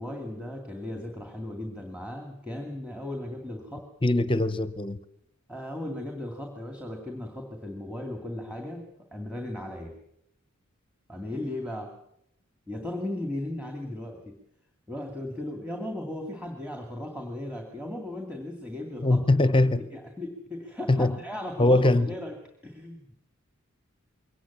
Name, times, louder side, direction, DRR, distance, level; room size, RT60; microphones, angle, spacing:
voice 1, 0.0-3.8 5.5-8.8 9.1-10.0 11.1-11.9 12.7-14.2 14.9-19.2 19.5-19.6 19.9-22.3 22.6-23.2, left 1 dB, 5° right, 2.4 m, -36 dB
voice 2, 4.0-5.0 19.0-19.9 20.9-21.2 21.6-22.1, left 2 dB, 25° left, 0.8 m, -22 dB
22.5 x 18.5 x 7.4 m
head